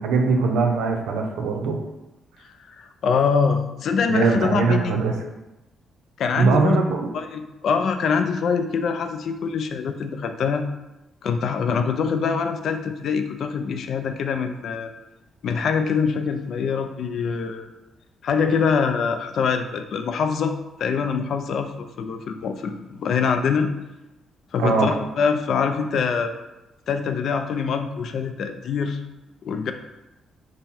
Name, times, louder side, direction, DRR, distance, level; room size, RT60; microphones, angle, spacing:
voice 1, 0.0-1.8 4.0-5.1 6.4-7.1 24.6-24.9, right 4 dB, 90° right, 2 dB, 0.6 m, -21 dB
voice 2, 2.7-4.9 6.2-6.8 7.1-10.6 11.2-14.9 15.4-17.7 18.2-20.5 20.8-23.7 24.5-26.3 26.9-29.0 29.4-29.7, left 5 dB, 65° left, 7 dB, 0.4 m, -24 dB
5.3 x 2.2 x 4.3 m, 0.96 s
cardioid pair, 90°, 0 cm